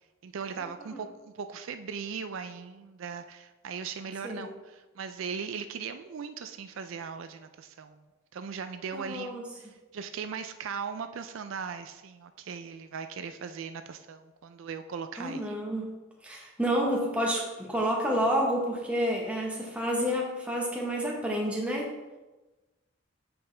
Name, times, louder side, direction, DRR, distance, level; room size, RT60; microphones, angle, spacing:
voice 1, 0.2-8.0 8.3-15.5, right 6 dB, 70° right, 9 dB, 0.4 m, -39 dB
voice 2, 8.9-9.4 15.2-21.9, equal, 5° right, -1 dB, 1.0 m, -29 dB
7.9 x 5.4 x 3.3 m, 1.1 s
head